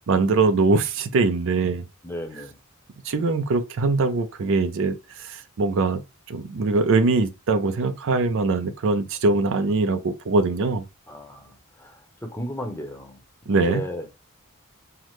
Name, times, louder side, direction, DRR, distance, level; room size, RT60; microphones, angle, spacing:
voice 1, 0.0-1.8 3.0-6.0 6.3-10.8 13.5-13.8, right 3 dB, 60° right, 0.4 m, -22 dB
voice 2, 2.0-2.6 11.1-13.2 13.5-14.2, equal, 10° left, 0.7 m, -34 dB
5.7 x 2.0 x 3.1 m
head